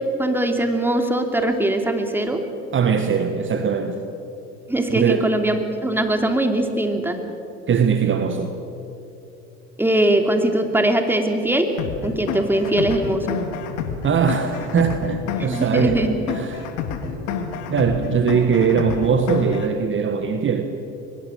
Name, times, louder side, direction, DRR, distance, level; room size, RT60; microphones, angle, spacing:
voice 1, 0.2-2.4 4.7-7.2 9.8-11.7 12.0-13.4 15.4-16.2, right 1 dB, 5° right, 5 dB, 3.0 m, -21 dB
voice 2, 2.7-4.0 4.9-5.3 7.7-8.5 14.0-16.0 16.3-16.7 17.7-20.6, right 6 dB, 35° right, 7 dB, 1.7 m, -21 dB
sound 1, 11.8-19.8, left 6 dB, 65° left, 2.2 m, -29 dB
23.0 x 21.5 x 6.4 m, 2.9 s
hypercardioid pair, 65°, 33 cm